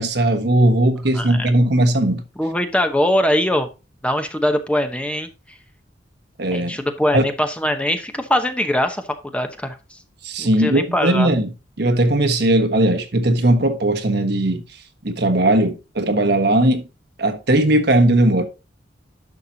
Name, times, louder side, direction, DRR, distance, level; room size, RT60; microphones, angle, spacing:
voice 1, 0.0-2.2 6.4-6.8 7.1-7.2 10.2-11.5 11.8-14.6 15.0-16.8 17.2-18.4, right 1 dB, 65° right, 1.3 m, -18 dB
voice 2, 1.1-1.5 2.4-3.7 4.0-5.3 6.5-9.8 10.4-11.3, left 1 dB, 5° left, 0.9 m, -22 dB
11.0 x 6.7 x 2.8 m
head